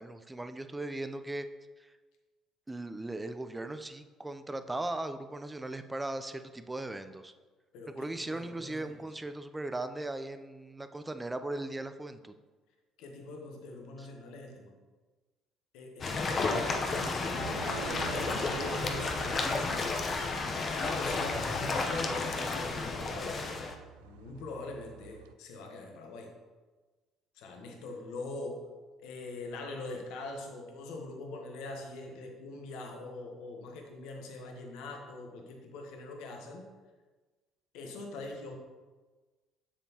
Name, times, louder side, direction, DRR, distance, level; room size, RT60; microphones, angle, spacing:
voice 1, 0.0-1.5 1.8-1.9 2.7-7.3 7.9-12.3 14.0-14.1, right 2 dB, 15° right, 9 dB, 0.5 m, -38 dB
voice 2, 7.7-9.0 13.0-14.8 15.7-20.3 20.7-23.6 24.0-26.3 27.3-28.7 29.0-36.7 37.7-38.6, left 2 dB, 75° left, 2 dB, 1.1 m, -43 dB
sound 1, 16.0-23.7, left 3 dB, 45° left, 0.8 m, -32 dB
sound 2, 16.4-25.3, right 9 dB, 85° right, 0.3 m, -48 dB
7.1 x 7.0 x 2.9 m, 1.3 s
hypercardioid pair, 60°, 0 cm